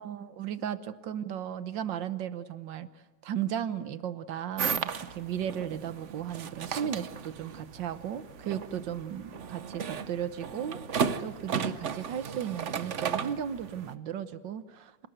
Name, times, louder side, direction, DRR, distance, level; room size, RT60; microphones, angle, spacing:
voice 1, 0.0-2.9 3.2-10.8 11.2-15.1, right 9 dB, 75° right, 13 dB, 1.7 m, -35 dB
sound 1, 4.6-13.9, right 6 dB, 50° right, 1.1 m, -35 dB
27.5 x 19.0 x 7.9 m, 1.3 s
omnidirectional pair, 2.0 m